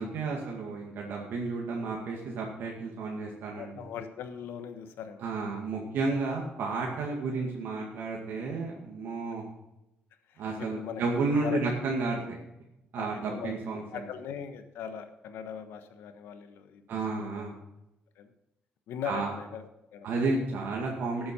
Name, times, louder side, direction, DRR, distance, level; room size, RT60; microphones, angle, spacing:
voice 1, 0.0-3.8 5.2-9.4 10.4-12.4 12.9-14.0 16.9-17.5 19.0-19.3 20.0-21.3, right 3 dB, 75° right, -1 dB, 2.1 m, -32 dB
voice 2, 3.5-5.2 10.3-11.0 11.4-11.6 12.9-17.5 18.1-18.3 18.9-20.1, left 8 dB, 85° left, 8 dB, 1.3 m, -40 dB
13.0 x 7.8 x 5.5 m, 0.90 s
cardioid pair, 125°, 4 cm